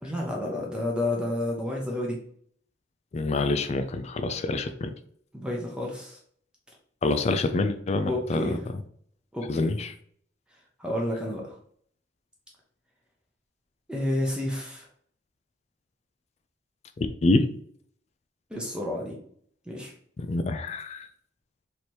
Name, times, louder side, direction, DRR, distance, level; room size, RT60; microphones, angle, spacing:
voice 1, 0.0-2.2 5.3-6.2 8.0-8.6 9.3-9.7 10.8-11.6 13.9-14.9 18.5-19.2 19.7-19.9, left 1 dB, 5° right, -2 dB, 0.7 m, -30 dB
voice 2, 3.1-4.9 7.0-8.5 9.5-9.9 17.0-17.5 20.2-21.1, left 2 dB, 35° left, 9 dB, 0.3 m, -26 dB
3.2 x 2.8 x 4.3 m, 0.62 s
head